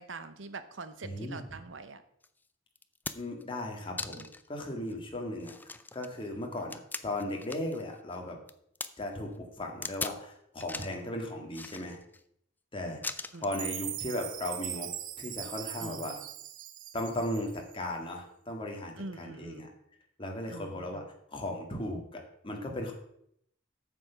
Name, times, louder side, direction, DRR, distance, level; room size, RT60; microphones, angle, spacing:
voice 1, 0.0-2.0 13.3-13.5 15.8-16.3 19.0-19.7 20.5-21.1, right 3 dB, 75° right, 11 dB, 0.9 m, -44 dB
voice 2, 1.0-1.4 3.1-5.5 5.9-8.4 9.0-12.0 12.7-13.0 13.4-14.9 15.2-16.1 16.9-19.7 20.2-21.0 21.3-22.9, left 1 dB, 30° left, 1 dB, 1.9 m, -36 dB
sound 1, 2.2-2.3 2.8-3.4 4.0-4.5 4.9-5.0 5.4-7.8 8.1-8.9 9.8-10.2 10.6-11.0 11.5-12.2 13.0-13.6 14.6-14.8, left 3 dB, 10° left, 0.4 m, -40 dB
Chime, 13.5-17.8, right 12 dB, 45° right, 0.6 m, -40 dB
8.0 x 7.1 x 5.7 m, 0.72 s
head